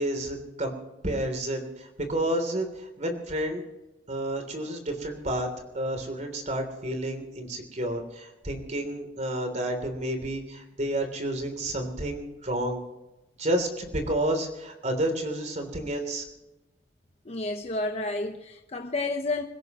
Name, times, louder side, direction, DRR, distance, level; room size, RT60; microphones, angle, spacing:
voice 1, 0.0-3.7 4.1-5.5 5.7-12.8 13.4-16.2, right 1 dB, 40° right, 3.2 m, -30 dB
voice 2, 17.2-19.4, left 2 dB, 35° left, 1.0 m, -30 dB
25.5 x 16.5 x 3.0 m
head